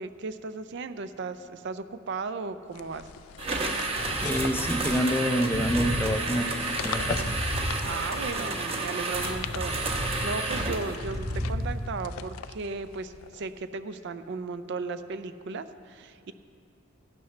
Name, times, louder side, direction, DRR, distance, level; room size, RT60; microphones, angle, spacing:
voice 1, 0.0-3.1 7.8-16.3, right 4 dB, 55° right, 11 dB, 0.5 m, -36 dB
sound 1, 2.7-5.5 6.3-8.5 9.1-10.2 10.8-13.6, left 8 dB, 85° left, 0.4 m, -41 dB
sound 2, 3.4-10.9, right 3 dB, 30° right, 1.0 m, -31 dB
sound 3, 4.0-5.2 5.4-8.2 8.6-11.9, equal, 75° right, 2.2 m, -33 dB
voice 2, 4.2-7.2, equal, 10° left, 6 dB, 0.5 m, -27 dB
16.0 x 11.5 x 3.2 m, 2.3 s
head